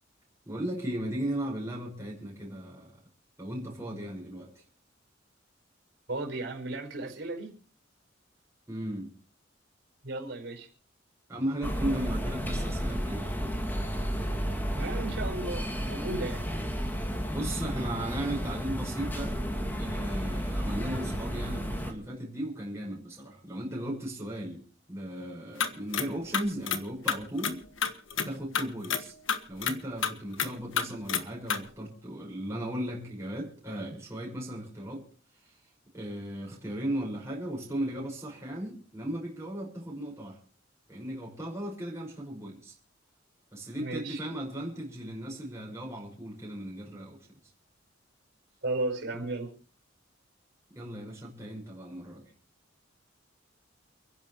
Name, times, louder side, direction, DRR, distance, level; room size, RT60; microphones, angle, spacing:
voice 1, 0.4-3.0 3.4-4.5 8.7-9.1 11.3-13.3 17.3-19.4 19.8-24.6 24.9-27.6 28.2-29.1 29.5-35.0 35.4-35.5 35.9-40.4 40.9-42.7 43.5-47.2 49.1-49.2 50.8-52.3, right 1 dB, 15° right, -3 dB, 5.7 m, -36 dB
voice 2, 6.1-7.5 10.0-10.7 14.7-16.4 43.8-44.2 48.6-49.5, right 2 dB, 65° right, 4 dB, 5.2 m, -34 dB
sound 1, 11.6-21.9, equal, 10° left, 2.4 m, -32 dB
sound 2, 25.6-26.1 26.3-26.8 27.1-28.3 28.5-29.0 29.3-29.8 30.0-30.5 30.8-31.2 31.5-31.6, left 6 dB, 85° left, 1.6 m, -28 dB
29.5 x 11.0 x 3.2 m, 0.41 s
head